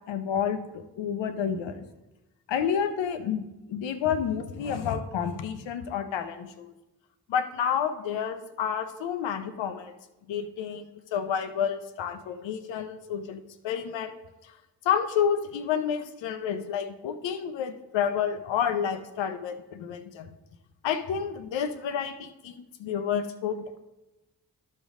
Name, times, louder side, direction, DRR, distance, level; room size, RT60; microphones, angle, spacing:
voice 1, 0.0-1.8 2.5-6.7 7.3-9.9 10.3-14.2 14.4-14.5 14.8-20.3 20.8-23.8, left 8 dB, 85° left, 10 dB, 0.7 m, -30 dB
12.0 x 5.3 x 3.6 m, 1.0 s
supercardioid pair, 40°, 43 cm